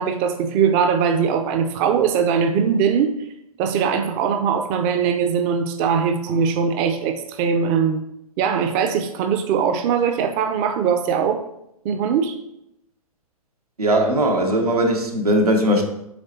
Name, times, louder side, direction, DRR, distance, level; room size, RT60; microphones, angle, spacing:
voice 1, 0.0-3.1 3.6-8.0 8.4-11.4 11.8-12.4, right 6 dB, 30° right, 6 dB, 0.6 m, -21 dB
voice 2, 13.8-15.8, right 1 dB, 85° right, 2 dB, 1.3 m, -19 dB
7.4 x 3.3 x 4.2 m, 0.81 s
figure-of-eight pair, 120°, 19 cm